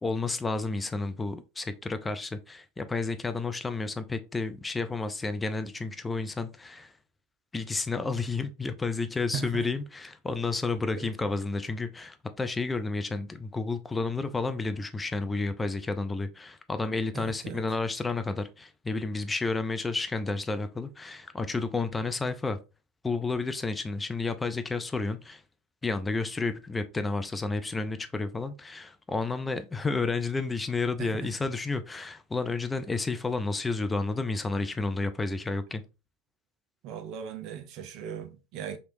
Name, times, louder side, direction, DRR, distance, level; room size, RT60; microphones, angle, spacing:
voice 1, 0.0-6.9 7.5-22.6 23.0-25.4 25.8-35.8, left 3 dB, 15° left, 0.4 m, -31 dB
voice 2, 9.3-9.7 11.0-11.1 17.1-17.6 31.0-31.3 36.8-38.8, right 7 dB, 50° right, 0.5 m, -38 dB
3.1 x 2.9 x 2.6 m
figure-of-eight pair, 80°, 0 cm